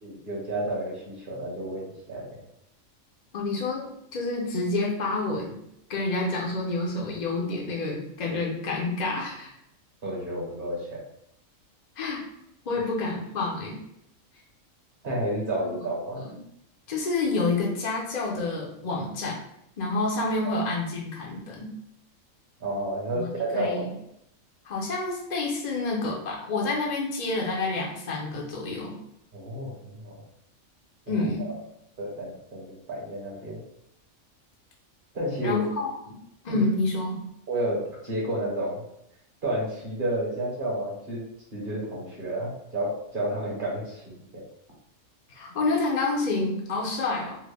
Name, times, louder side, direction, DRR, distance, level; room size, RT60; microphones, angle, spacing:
voice 1, 0.0-2.2 10.0-10.9 15.0-16.2 20.4-20.5 22.6-23.8 29.3-30.1 31.1-31.6 32.0-33.6 35.1-35.6 36.5-36.6 37.5-38.8 39.4-41.2 41.5-44.4, right 1 dB, 40° right, -5 dB, 1.2 m, -31 dB
voice 2, 3.3-5.6 5.9-9.5 12.0-12.2 12.7-13.8 15.6-15.7 16.2-16.3 16.9-19.4 19.8-21.7 23.1-23.9 24.7-29.0 31.1-31.5 35.4-36.2 36.4-37.2 45.3-47.4, left 3 dB, 50° left, -2 dB, 0.5 m, -28 dB
3.4 x 2.1 x 3.3 m, 0.77 s
omnidirectional pair, 1.5 m